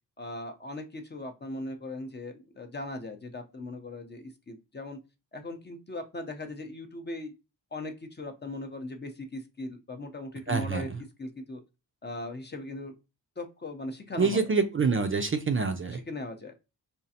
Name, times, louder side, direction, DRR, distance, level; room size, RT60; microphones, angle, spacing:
voice 1, 0.2-5.0 5.3-7.3 7.7-10.9 11.2-11.6 12.0-12.9 13.4-14.5 15.9-16.5, left 2 dB, 25° left, 4 dB, 0.6 m, -39 dB
voice 2, 10.5-10.8 14.2-16.0, right 4 dB, 35° right, 6 dB, 0.4 m, -26 dB
5.0 x 2.4 x 2.7 m, 0.27 s
wide cardioid pair, 125°, 39 cm